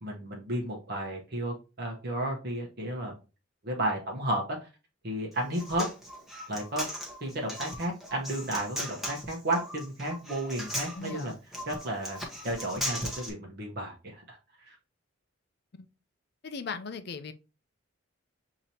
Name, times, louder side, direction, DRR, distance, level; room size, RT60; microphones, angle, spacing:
voice 1, 0.0-3.2 3.6-4.7 5.0-5.9 6.5-6.9 7.2-11.3 11.7-14.7, right 1 dB, 50° right, 0.9 m, -33 dB
Human voice, 5.3-13.3, equal, ahead, 0.9 m, -38 dB
voice 2, 10.9-11.4 15.7-15.9 16.4-17.3, left 5 dB, 50° left, 0.5 m, -38 dB
6.6 x 2.9 x 2.8 m
head